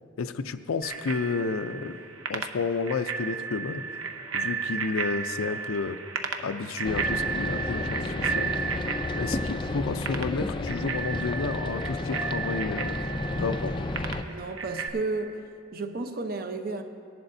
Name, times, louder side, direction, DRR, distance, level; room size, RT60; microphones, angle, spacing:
voice 1, 0.2-2.0 2.3-3.8 4.3-6.0 6.4-8.5 9.1-13.0 13.3-13.7, left 4 dB, 90° left, 11 dB, 0.5 m, -31 dB
Bicycle bell, 0.8-14.9, right 5 dB, 85° right, 0.8 m, -34 dB
sound 1, 6.8-14.2, left 2 dB, 25° left, 0.3 m, -32 dB
voice 2, 14.3-15.4 15.7-16.8, right 3 dB, 45° right, 7 dB, 0.7 m, -33 dB
18.5 x 11.0 x 2.7 m, 2.4 s
head